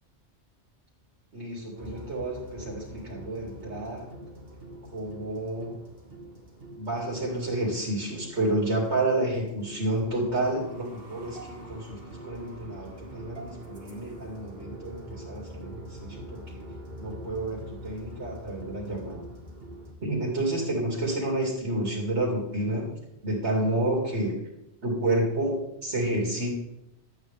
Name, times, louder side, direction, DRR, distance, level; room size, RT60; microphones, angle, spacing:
voice 1, 1.3-4.1 4.9-5.8 6.8-16.6 17.0-19.2 20.0-22.9 23.2-24.4 24.8-26.5, right 1 dB, 90° right, -3 dB, 2.8 m, -30 dB
sound 1, 1.8-19.9, right 1 dB, 60° right, 2.0 m, -44 dB
12.0 x 9.2 x 3.6 m, 0.85 s
omnidirectional pair, 1.1 m